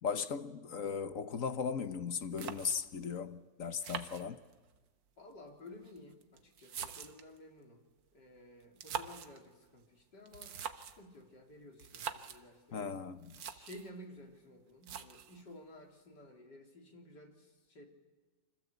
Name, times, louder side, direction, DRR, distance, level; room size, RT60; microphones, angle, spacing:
voice 1, 0.0-4.4 12.7-13.3, left 6 dB, 50° left, 1.3 m, -37 dB
sound 1, 2.0-2.1 2.4-3.1 3.8-4.8 5.7-7.4 8.6-9.4 10.3-11.1 11.8-12.4 13.0-13.1 13.2-13.9 14.8-15.4, right 7 dB, 90° right, 1.9 m, -44 dB
voice 2, 5.2-7.9 8.1-12.9 13.5-17.9, left 1 dB, 70° left, 4.0 m, -54 dB
28.0 x 25.5 x 8.2 m
omnidirectional pair, 1.9 m